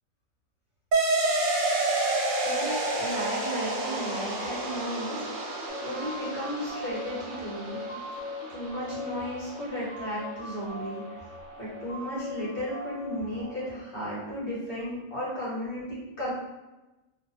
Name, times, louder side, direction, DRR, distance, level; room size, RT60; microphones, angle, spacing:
sound 1, 0.9-9.9, right 2 dB, 75° right, 1.0 m, -30 dB
voice 1, 2.4-5.4 5.8-7.8 8.5-11.0 11.6-16.3, equal, 50° left, -9 dB, 1.6 m, -34 dB
sound 2, 5.7-13.7, left 1 dB, 85° left, 1.2 m, -40 dB
2.8 x 2.4 x 2.8 m, 1.1 s
omnidirectional pair, 1.5 m